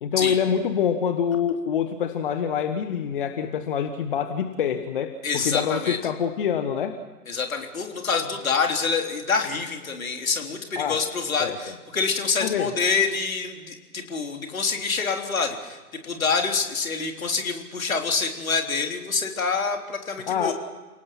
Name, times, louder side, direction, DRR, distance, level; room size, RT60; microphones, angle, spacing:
voice 1, 0.0-6.9 10.8-11.0 11.4-11.6 12.4-12.7 20.3-20.5, left 8 dB, 35° left, 9 dB, 1.2 m, -26 dB
voice 2, 5.2-6.0 7.3-15.8 16.0-20.5, left 5 dB, 60° left, 3 dB, 3.7 m, -26 dB
29.5 x 18.5 x 5.9 m, 1.3 s
figure-of-eight pair, 130°, 46 cm